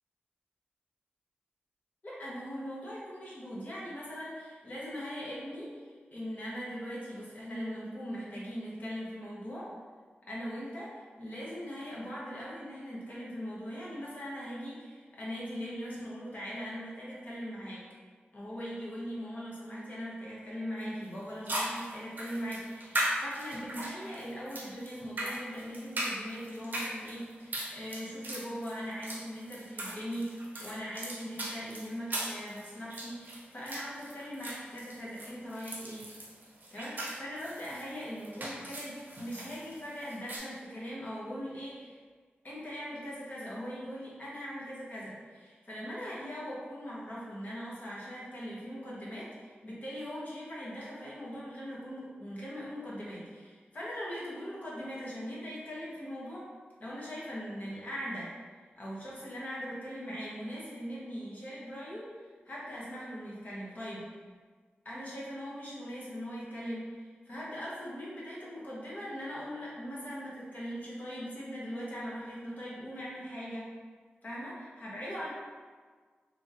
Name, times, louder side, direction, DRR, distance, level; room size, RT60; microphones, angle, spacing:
voice 1, 2.0-9.7 10.3-17.8 18.3-36.1 36.7-42.0 42.4-56.5 56.8-58.3 58.8-62.1 62.5-64.1 64.8-73.7 74.2-75.3, equal, 45° left, -7 dB, 0.9 m, -40 dB
sound 1, 20.8-20.9 21.5-40.4, right 1 dB, 55° right, 0.6 m, -39 dB
2.9 x 2.7 x 2.4 m, 1.5 s
wide cardioid pair, 85°, 4 cm